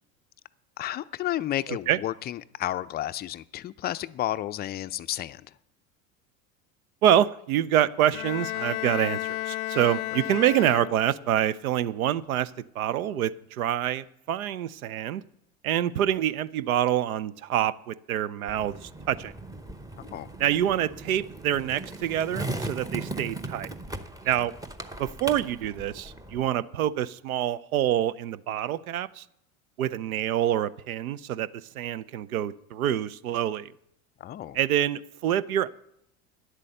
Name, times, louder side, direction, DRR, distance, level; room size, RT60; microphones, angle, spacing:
voice 1, 0.8-5.4 20.0-20.3 34.2-34.6, left 13 dB, 25° left, 13 dB, 0.4 m, -32 dB
voice 2, 1.7-2.0 7.0-15.2 15.6-19.3 20.4-23.7 24.2-24.5 25.0-29.2 29.8-31.5 31.7-33.7 34.5-35.7, right 11 dB, 80° right, 17 dB, 0.6 m, -26 dB
Bowed string instrument, 8.1-11.3, left 16 dB, 80° left, 0.6 m, -33 dB
Skateboard, 18.5-26.5, right 2 dB, 10° right, 0.8 m, -38 dB
10.5 x 8.2 x 6.6 m, 0.75 s
hypercardioid pair, 80°, 42 cm